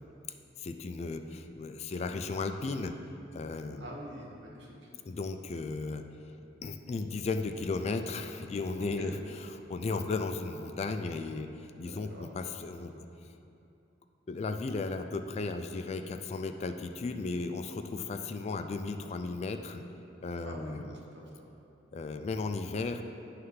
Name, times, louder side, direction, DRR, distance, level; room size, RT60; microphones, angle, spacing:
voice 1, 0.6-3.0 3.3-3.9 4.9-6.0 6.6-11.5 11.8-13.1 14.3-19.8 20.2-21.0 21.9-23.0, left 3 dB, 35° left, 7 dB, 0.3 m, -35 dB
voice 2, 3.7-4.9 8.7-9.1 11.7-12.3 20.4-20.9 21.1-21.5, right 1 dB, 70° right, -2 dB, 1.2 m, -46 dB
9.4 x 3.3 x 5.6 m, 2.7 s
head